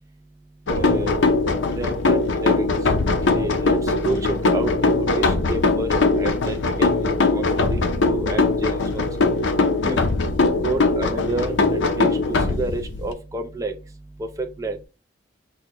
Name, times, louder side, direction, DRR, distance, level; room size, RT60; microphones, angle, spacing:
sound 1, 0.7-13.1, left 3 dB, 85° left, 0.6 m, -21 dB
voice 1, 0.7-1.2 1.5-2.7 3.3-4.2 4.5-4.7 5.0-9.0 9.8-10.0 10.6-12.2 12.5-13.7 14.2-14.8, right 2 dB, 20° right, 4 dB, 0.4 m, -30 dB
6.1 x 2.2 x 2.9 m, 0.29 s
head